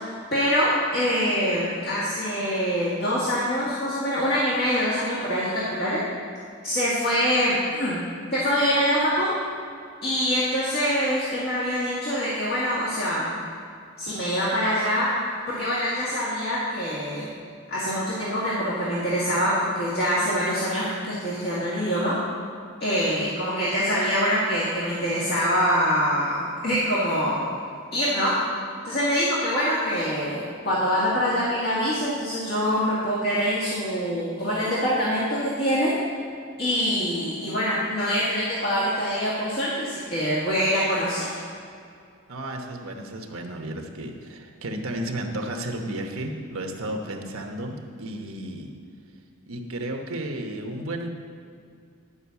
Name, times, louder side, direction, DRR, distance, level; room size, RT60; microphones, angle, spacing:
voice 1, 0.0-6.0 6.6-8.0 8.3-9.3 10.0-13.3 14.0-15.1 15.5-17.3 17.7-22.2 22.8-27.5 27.9-28.4 28.8-35.9 36.6-41.4, equal, 45° left, -8 dB, 1.8 m, -24 dB
voice 2, 42.3-48.7 49.5-51.1, right 1 dB, 70° right, 3 dB, 1.1 m, -33 dB
11.0 x 5.5 x 7.0 m, 2.3 s
head